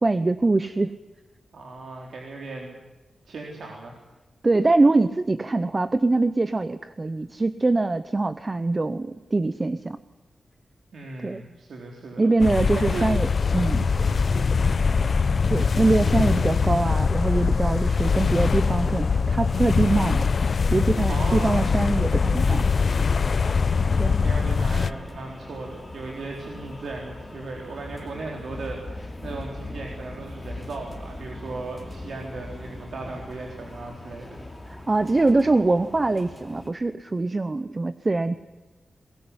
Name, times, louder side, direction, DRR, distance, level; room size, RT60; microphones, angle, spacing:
voice 1, 0.0-0.9 4.4-10.0 11.2-11.4 12.2-13.3 13.5-13.9 15.5-20.2 20.7-22.6 24.0-24.3 34.7-38.4, right 2 dB, 25° right, 13 dB, 0.7 m, -23 dB
voice 2, 1.5-2.8 3.2-4.0 10.9-12.3 12.7-13.1 13.9-14.5 21.1-21.6 23.7-34.5, right 3 dB, 70° right, 0 dB, 3.9 m, -37 dB
sound 1, 12.4-24.9, left 5 dB, 45° left, 0.8 m, -22 dB
sound 2, 18.3-36.7, left 2 dB, 10° left, 3.7 m, -40 dB
22.0 x 21.0 x 9.7 m, 1.2 s
wide cardioid pair, 175°, 0 cm